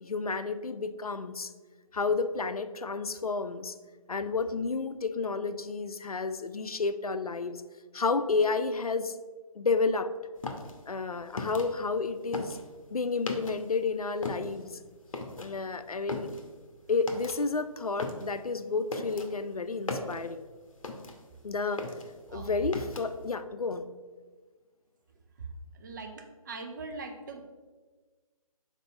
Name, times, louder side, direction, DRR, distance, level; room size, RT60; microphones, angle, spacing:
voice 1, 0.0-1.5 1.9-3.8 4.1-7.6 7.9-9.2 9.5-10.1 10.9-12.6 12.9-14.8 15.4-16.3 16.9-20.5 21.4-21.9 22.3-23.9, left 4 dB, 85° left, 11 dB, 0.5 m, -31 dB
sound 1, 10.4-13.8 14.1-21.4 21.7-23.3, left 3 dB, 65° left, 0.9 m, -39 dB
voice 2, 25.8-27.4, right 3 dB, 35° right, 4 dB, 0.7 m, -41 dB
4.4 x 4.0 x 5.6 m, 1.4 s
figure-of-eight pair, 145°, 18 cm